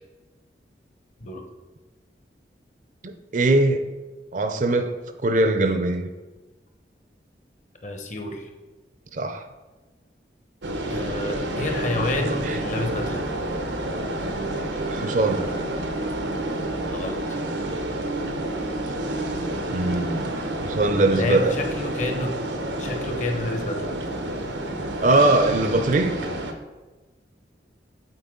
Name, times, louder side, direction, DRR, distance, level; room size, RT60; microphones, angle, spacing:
voice 1, 3.0-3.9 4.3-5.0 5.2-6.1 9.1-9.4 12.3-12.6 14.9-15.5 19.7-20.2 20.6-21.6 25.0-26.2, right 2 dB, 45° right, 0.5 m, -21 dB
voice 2, 7.8-8.5 10.9-13.2 16.8-17.2 21.1-22.4 22.8-23.9, left 2 dB, 40° left, 0.9 m, -29 dB
sound 1, 10.6-26.5, right 1 dB, 90° right, 0.8 m, -29 dB
7.9 x 4.4 x 3.7 m
head